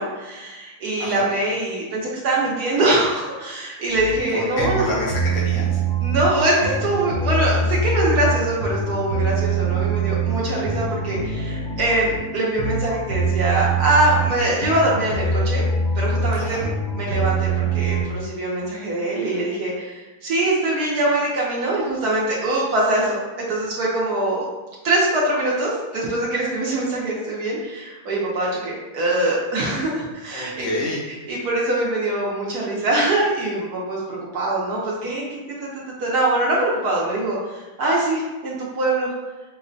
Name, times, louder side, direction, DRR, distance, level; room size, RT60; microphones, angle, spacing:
voice 1, 0.0-4.9 6.0-15.6 15.9-16.7 16.9-24.4 24.8-30.7 31.1-39.1, right 2 dB, 65° right, -5 dB, 1.0 m, -23 dB
sound 1, 3.9-18.0, right 3 dB, 55° left, 1.0 m, -24 dB
voice 2, 4.3-5.8 16.3-16.6 30.3-31.0, left 1 dB, 85° left, -4 dB, 1.7 m, -27 dB
5.4 x 2.1 x 2.5 m, 1.2 s
omnidirectional pair, 2.1 m